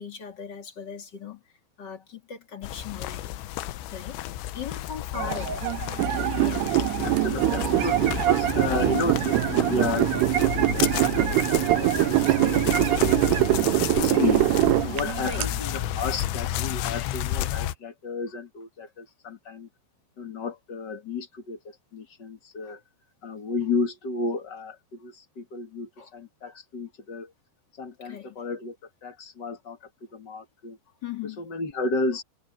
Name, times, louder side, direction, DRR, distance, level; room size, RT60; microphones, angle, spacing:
voice 1, 0.0-1.4 1.8-3.4 3.9-4.2 4.5-5.6 6.4-6.7 7.4-7.7 14.3-14.5 15.2-15.4 22.6-22.8 26.0-26.1 28.0-28.4 31.0-31.4, left 7 dB, 35° left, 1.7 m, -38 dB
sound 1, 2.6-17.8, left 13 dB, 80° left, 3.1 m, -32 dB
sound 2, 5.1-16.7, right 11 dB, 70° right, 1.6 m, -31 dB
sound 3, 6.0-15.5, right 18 dB, 90° right, 2.4 m, -23 dB
voice 2, 7.0-13.1 13.4-13.5 13.9-14.4 14.8-19.7 20.2-22.8 23.2-27.3 27.7-30.8 31.2-32.2, left 3 dB, 60° left, 1.1 m, -33 dB
omnidirectional pair, 5.5 m